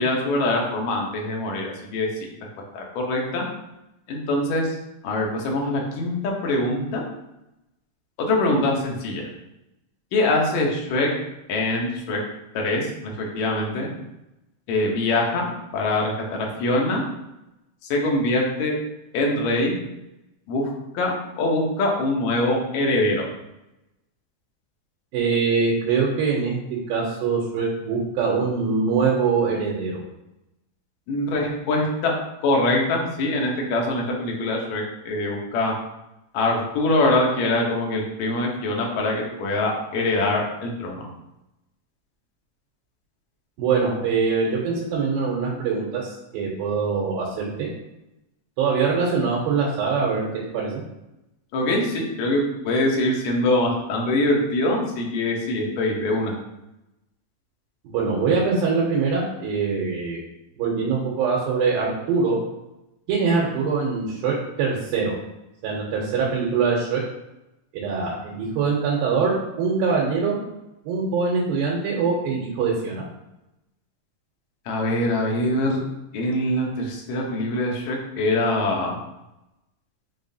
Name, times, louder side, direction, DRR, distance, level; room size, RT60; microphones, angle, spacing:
voice 1, 0.0-2.1 2.7-3.4 4.1-4.8 5.0-7.0 8.2-9.2 10.1-11.1 11.5-12.2 12.5-13.9 14.7-15.5 15.7-17.0 17.9-18.8 19.1-19.8 20.5-23.2 31.1-32.1 32.4-35.7 36.3-41.0 51.5-56.3 74.7-75.8 76.1-79.0, left 2 dB, 70° left, -1 dB, 1.8 m, -23 dB
voice 2, 25.1-26.6 26.9-30.0 43.6-47.7 48.6-50.8 57.8-60.2 60.6-62.4 63.1-65.1 65.6-67.0 67.7-70.4 70.9-73.1, right 5 dB, 85° right, -3 dB, 2.6 m, -23 dB
5.4 x 3.7 x 2.7 m, 0.91 s
omnidirectional pair, 4.1 m